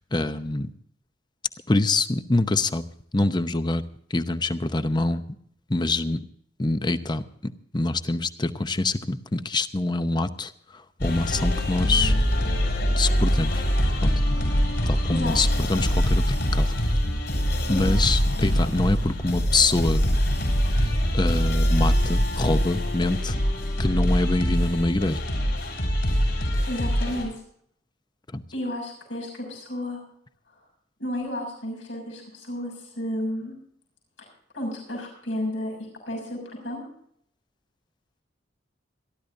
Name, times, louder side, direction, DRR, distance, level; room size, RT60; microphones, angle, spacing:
voice 1, 0.1-0.7 1.7-2.8 3.1-3.8 4.1-5.2 5.7-6.2 6.6-10.5 11.0-12.1 13.0-13.6 14.0-14.1 14.9-16.7 17.7-20.1 21.1-23.3 23.8-25.2 28.3-28.4, left 2 dB, 25° left, 10 dB, 0.8 m, -25 dB
sound 1, 11.0-27.2, equal, 65° left, 7.5 m, -23 dB
voice 2, 15.1-15.5 17.7-18.0 26.6-27.3 28.5-30.0 30.5-30.6 31.0-33.5 34.2-34.3 34.5-36.8, left 1 dB, 85° left, 0 dB, 6.5 m, -32 dB
27.5 x 12.0 x 2.7 m, 0.66 s
head